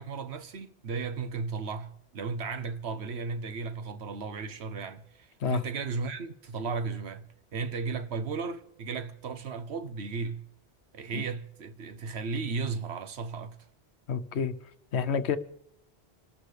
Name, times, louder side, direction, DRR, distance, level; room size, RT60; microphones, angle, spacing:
voice 1, 0.0-10.4 10.9-13.6, right 4 dB, 75° right, 1.1 m, -35 dB
voice 2, 14.1-14.5 14.9-15.4, left 6 dB, 85° left, 1.1 m, -28 dB
27.5 x 13.0 x 3.3 m
omnidirectional pair, 1.1 m